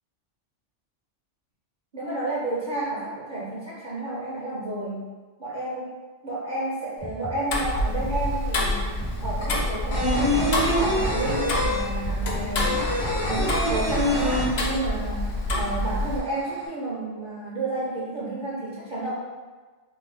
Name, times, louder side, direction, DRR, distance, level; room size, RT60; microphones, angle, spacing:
voice 1, 1.9-5.0 5.4-5.9 6.2-9.0 9.2-12.9 13.2-19.1, right 2 dB, 55° right, -6 dB, 0.7 m, -31 dB
sound 1, 7.0-13.7, left 2 dB, 20° left, 0.4 m, -41 dB
Tick-tock, 7.5-16.2, left 1 dB, 65° left, 0.8 m, -27 dB
sound 2, 8.2-8.3 8.5-15.1 15.4-15.5 15.8-16.6, left 1 dB, 85° left, 1.2 m, -25 dB
3.6 x 2.1 x 3.1 m, 1.4 s
omnidirectional pair, 1.2 m